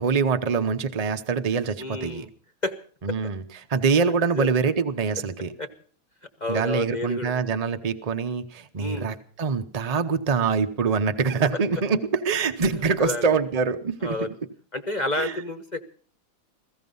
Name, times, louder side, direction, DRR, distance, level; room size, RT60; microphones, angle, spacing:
voice 1, 0.0-2.3 3.0-3.4 3.7-5.5 6.5-14.3 15.2-15.3, right 5 dB, 50° right, 8 dB, 0.4 m, -24 dB
voice 2, 1.8-2.3 2.6-2.7 4.3-4.5 5.6-5.7 6.4-7.5 8.7-9.1 13.0-13.4 14.0-14.3 14.7-15.8, left 2 dB, 30° left, 7 dB, 1.0 m, -30 dB
16.0 x 16.0 x 5.4 m, 0.44 s
omnidirectional pair, 2.2 m